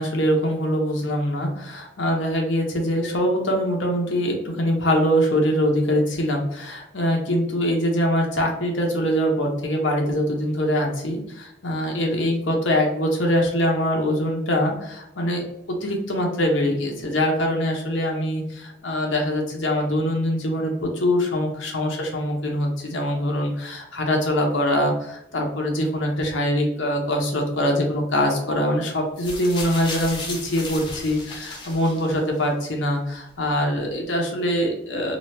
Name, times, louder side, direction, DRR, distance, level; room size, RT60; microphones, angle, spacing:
voice 1, 0.0-15.4 15.7-35.2, equal, 85° left, 1 dB, 0.8 m, -23 dB
sound 1, 29.2-32.4 33.3-33.4, left 2 dB, 25° left, 0.7 m, -35 dB
3.0 x 2.4 x 3.1 m, 0.81 s
head